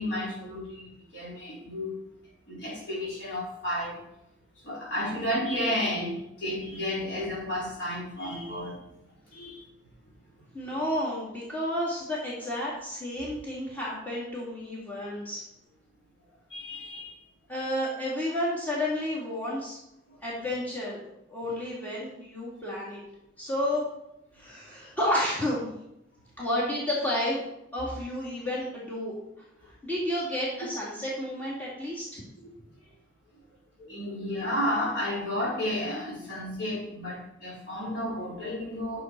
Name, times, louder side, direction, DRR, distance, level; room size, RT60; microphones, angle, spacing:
voice 1, 0.0-2.0 2.5-4.0 4.6-8.8 9.3-9.7 16.5-17.1 33.8-39.0, left 1 dB, 60° left, -5 dB, 4.3 m, -32 dB
voice 2, 10.5-15.4 17.5-19.8 20.2-21.0 21.3-23.0 23.4-23.8 24.3-25.7 26.4-27.4 27.7-29.1 29.8-32.2, left 1 dB, 10° left, -6 dB, 2.3 m, -31 dB
10.0 x 6.7 x 4.6 m, 0.83 s
head